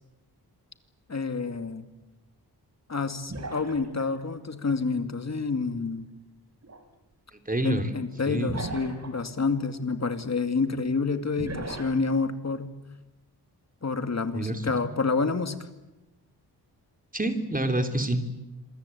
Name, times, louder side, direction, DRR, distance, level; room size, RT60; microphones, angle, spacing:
voice 1, 1.1-1.9 2.9-6.1 7.6-12.7 13.8-15.6, left 4 dB, 40° left, 8 dB, 2.4 m, -28 dB
sound 1, 3.3-4.2 6.6-6.8 8.5-9.2 11.4-12.0, right 3 dB, 40° right, 4.6 m, -36 dB
voice 2, 7.3-7.9 8.2-8.5 14.3-14.6 17.1-18.2, right 1 dB, 20° right, 7 dB, 3.4 m, -27 dB
27.5 x 23.0 x 8.6 m, 1.0 s
wide cardioid pair, 85°, 39 cm